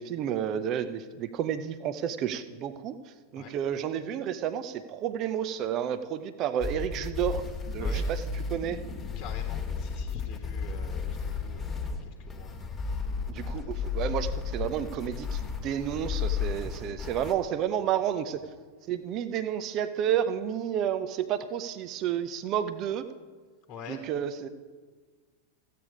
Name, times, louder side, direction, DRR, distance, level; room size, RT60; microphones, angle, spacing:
voice 1, 0.0-2.9 3.3-8.2 8.5-8.8 13.3-18.4 18.9-23.1 23.9-24.5, right 9 dB, 35° right, 13 dB, 0.6 m, -31 dB
sound 1, 6.6-17.3, left 5 dB, 20° left, 1.6 m, -33 dB
voice 2, 9.1-12.5 12.8-13.1 13.4-13.8 16.6-16.7 23.7-24.0, left 6 dB, 35° left, 3 dB, 1.2 m, -46 dB
15.0 x 8.5 x 4.9 m, 1.5 s
figure-of-eight pair, 90°, 0 cm